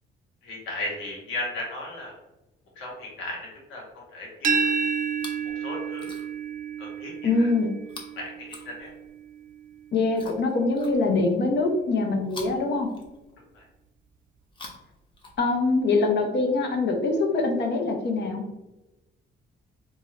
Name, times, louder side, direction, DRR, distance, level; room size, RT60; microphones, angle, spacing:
voice 1, 0.4-2.1 2.8-3.4 3.7-3.8 4.1-4.6 5.6-6.1 6.8-7.1 7.4-7.5 8.2-8.3 8.6-8.9 13.5-13.6, left 2 dB, 90° left, -3 dB, 1.4 m, -35 dB
sound 1, 4.4-10.2, right 6 dB, 45° right, 0.4 m, -31 dB
Chewing mastication, 5.0-5.5 5.9-6.5 7.8-9.2 10.1-11.4 12.2-13.5 14.4-15.8 16.7-16.8, left 2 dB, 25° left, 0.9 m, -46 dB
voice 2, 7.2-7.7 9.9-12.9 15.4-18.4, left 3 dB, 60° left, 2 dB, 0.8 m, -24 dB
3.7 x 2.6 x 3.2 m, 0.99 s
cardioid pair, 90°, 20 cm